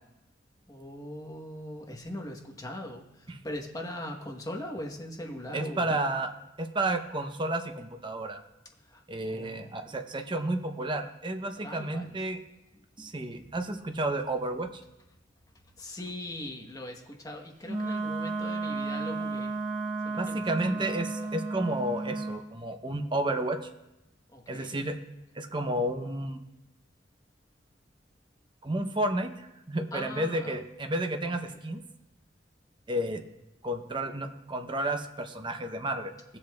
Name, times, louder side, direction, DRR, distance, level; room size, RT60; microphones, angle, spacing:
voice 1, 0.7-6.0 8.9-9.0 9.3-10.0 11.6-12.2 13.0-13.1 13.4-13.5 15.8-19.5 20.0-21.1 24.3-24.8 29.9-30.6 31.3-31.4, left 1 dB, 20° left, 1 dB, 1.1 m, -41 dB
voice 2, 5.5-6.3 6.6-8.4 9.1-12.4 13.0-14.8 20.2-23.6 24.5-25.0 25.3-26.4 28.6-29.3 29.7-31.8 32.9-33.2 33.6-36.1, right 1 dB, 25° right, 6 dB, 0.7 m, -31 dB
Wind instrument woodwind instrument, 17.6-22.4, right 3 dB, 40° right, 1.4 m, -33 dB
16.0 x 7.6 x 2.3 m, 0.92 s
head